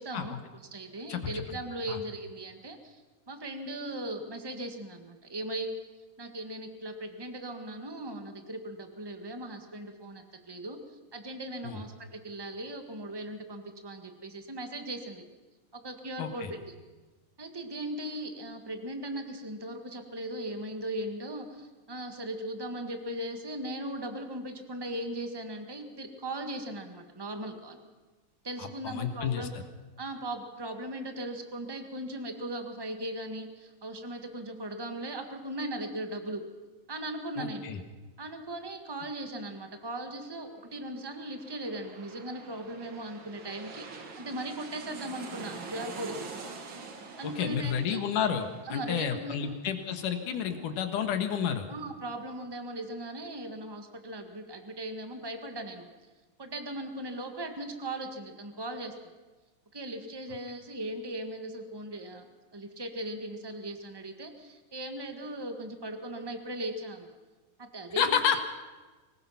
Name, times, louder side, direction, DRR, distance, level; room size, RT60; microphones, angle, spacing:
voice 1, 0.0-3.0 3.3-5.7 6.2-15.2 15.7-16.6 17.4-27.8 28.4-29.5 30.0-36.4 36.9-37.7 38.2-46.3 47.2-48.0 48.7-49.6 51.7-55.9 56.4-58.9 59.7-62.3 62.5-67.1 67.6-68.2, right 1 dB, 20° right, 6 dB, 0.6 m, -38 dB
voice 2, 1.1-1.4 1.9-2.0 11.6-11.8 16.2-16.5 28.6-29.5 37.4-37.8 47.2-51.7 68.0-68.4, left 8 dB, 80° left, 7 dB, 3.1 m, -30 dB
sound 1, 41.0-52.3 52.7-52.8, right 4 dB, 45° right, 2.2 m, -46 dB
24.5 x 20.0 x 5.8 m, 1.3 s
omnidirectional pair, 3.6 m